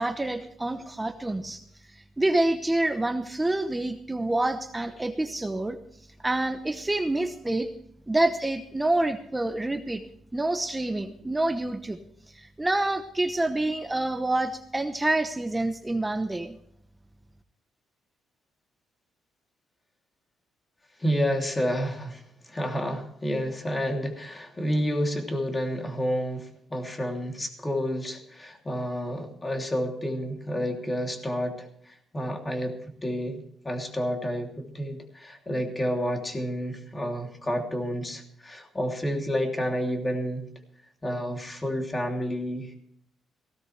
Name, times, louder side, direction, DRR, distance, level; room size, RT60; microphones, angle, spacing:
voice 1, 0.0-1.6 2.2-5.8 6.2-7.7 8.1-10.0 10.3-12.0 12.3-16.5, right 2 dB, 10° right, 7 dB, 0.9 m, -27 dB
voice 2, 21.0-40.5 41.0-42.8, equal, 20° left, 3 dB, 3.0 m, -30 dB
18.0 x 17.0 x 3.3 m, 0.66 s
cardioid pair, 130°, 0 cm